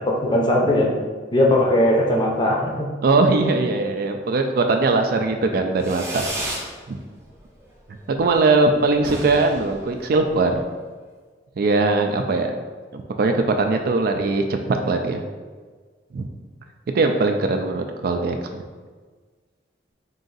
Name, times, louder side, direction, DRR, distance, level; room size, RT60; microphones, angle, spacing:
voice 1, 0.1-0.9 1.3-2.7, left 1 dB, 25° left, -1 dB, 0.6 m, -18 dB
voice 2, 3.0-6.3 6.9-7.0 8.1-10.6 11.6-12.5 12.9-15.2 16.1-16.3 16.9-18.6, right 3 dB, 55° right, 5 dB, 0.3 m, -20 dB
Fireworks, 5.8-6.7 7.1-7.6 7.9-8.0 8.2-8.4 8.6-8.7 8.9-10.6, right 1 dB, 15° right, 0.6 m, -32 dB
3.8 x 2.6 x 3.9 m, 1.4 s
head